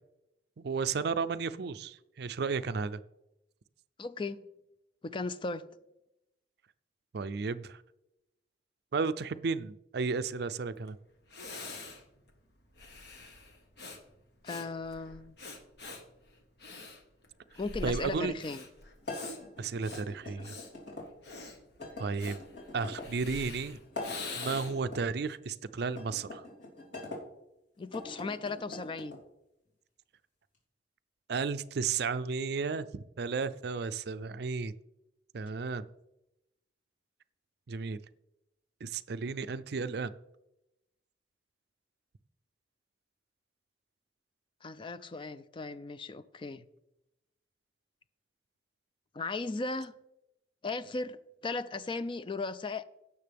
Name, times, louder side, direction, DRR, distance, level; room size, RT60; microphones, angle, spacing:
voice 1, 0.6-3.0 7.1-7.8 8.9-11.0 17.8-18.3 19.6-20.5 22.0-22.4 22.7-23.8 24.3-26.4 31.3-34.7 35.3-35.8 37.7-38.0 38.8-40.1, right 5 dB, 60° right, 0.4 m, -33 dB
voice 2, 4.0-4.4 5.0-5.6 14.4-15.3 17.6-18.6 27.8-29.2 44.6-46.6 49.1-49.9 50.6-51.2 51.4-52.8, left 3 dB, 30° left, 0.4 m, -36 dB
Breathing, 10.9-11.0 11.3-24.9, left 3 dB, 65° left, 1.5 m, -45 dB
sound 1, 19.0-21.1 21.8-23.1 23.8-25.0 25.9-27.2 27.8-29.2, left 2 dB, 85° left, 3.3 m, -43 dB
17.0 x 6.7 x 3.5 m
head